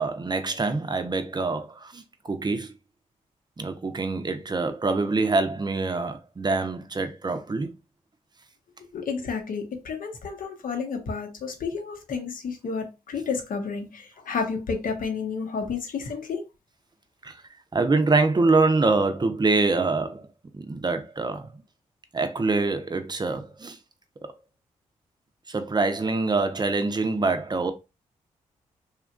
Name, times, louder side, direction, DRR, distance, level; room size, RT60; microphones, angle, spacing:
voice 1, 0.0-2.7 3.6-7.7 17.2-17.4 17.7-20.3 20.5-21.6 22.1-23.8 24.2-24.3 25.5-27.7, right 3 dB, 30° right, 0.6 m, -25 dB
voice 2, 8.9-16.4, left 5 dB, 65° left, 0.7 m, -31 dB
2.9 x 2.4 x 2.4 m
supercardioid pair, 40°, 15 cm